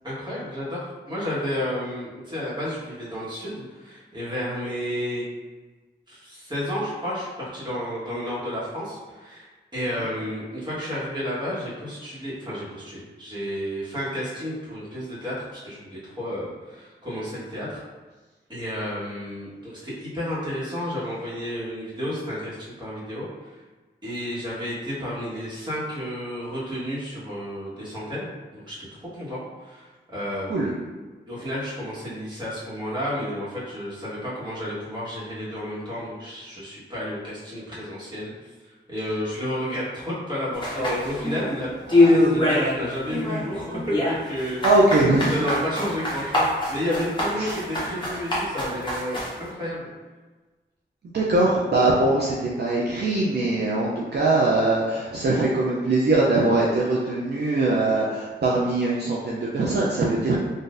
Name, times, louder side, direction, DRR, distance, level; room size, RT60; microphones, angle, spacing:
voice 1, 0.0-5.3 6.1-17.8 18.5-23.6 24.0-30.8 31.3-38.3 38.9-41.7 42.1-44.6 45.3-49.9, equal, 25° right, -9 dB, 1.4 m, -31 dB
sound 1, 40.6-41.5 41.9-42.8 43.1-49.3, left 1 dB, 25° left, 1.0 m, -23 dB
voice 2, 44.6-45.4 47.4-47.5 51.1-60.4, right 2 dB, 60° right, -5 dB, 0.5 m, -22 dB
3.8 x 2.6 x 2.5 m, 1.3 s
wide cardioid pair, 85°, 19 cm